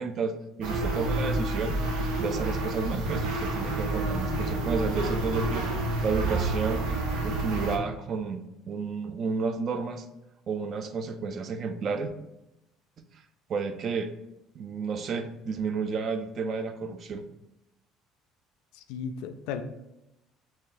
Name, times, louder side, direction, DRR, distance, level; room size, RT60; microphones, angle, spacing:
voice 1, 0.0-1.8 2.2-6.9 7.2-10.1 10.5-12.1 13.5-14.1 14.5-17.2, right 5 dB, 35° right, 9 dB, 0.3 m, -31 dB
sound 1, 0.6-7.8, right 2 dB, 85° right, 0.7 m, -29 dB
voice 2, 18.7-19.6, left 7 dB, 85° left, 8 dB, 0.3 m, -35 dB
3.1 x 2.8 x 3.8 m, 0.91 s
cardioid pair, 155°, 0 cm